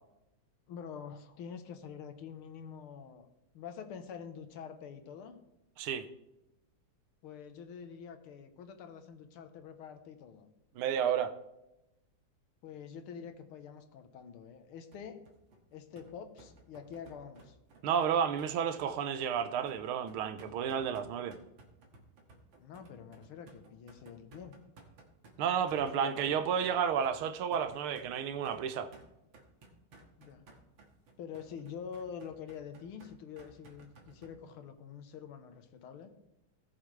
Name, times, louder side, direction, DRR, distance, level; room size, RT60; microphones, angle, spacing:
voice 1, 0.7-3.3 3.5-5.4 7.2-10.5 12.6-15.2 15.7-17.6 22.6-24.6 25.7-26.4 30.2-30.5 31.2-36.1, left 7 dB, 90° left, 1.9 m, -46 dB
voice 2, 10.7-11.3 17.8-21.4 25.4-28.9, right 8 dB, 85° right, 1.7 m, -31 dB
sound 1, 14.9-34.3, right 2 dB, 70° right, 2.4 m, -57 dB
17.5 x 7.1 x 3.3 m
omnidirectional pair, 2.3 m